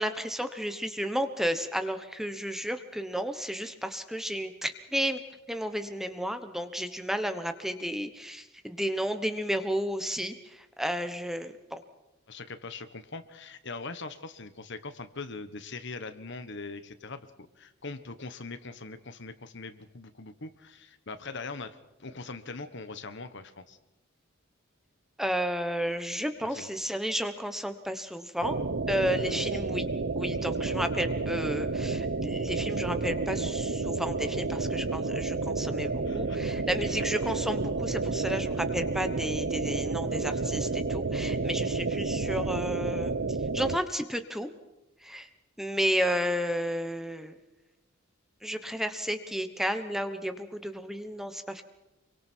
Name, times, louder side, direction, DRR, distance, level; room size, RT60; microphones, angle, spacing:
voice 1, 0.0-5.2 5.5-11.8 25.2-28.6 28.9-29.9 30.1-44.5 45.0-45.3 45.6-47.3 48.4-51.6, equal, ahead, 8 dB, 1.2 m, -32 dB
voice 2, 12.3-17.3 17.6-23.8 26.4-26.7 36.0-36.4, left 3 dB, 60° left, 10 dB, 1.4 m, -41 dB
sound 1, 28.4-43.8, right 3 dB, 60° right, 0.8 m, -30 dB
27.0 x 24.0 x 4.6 m, 0.95 s
head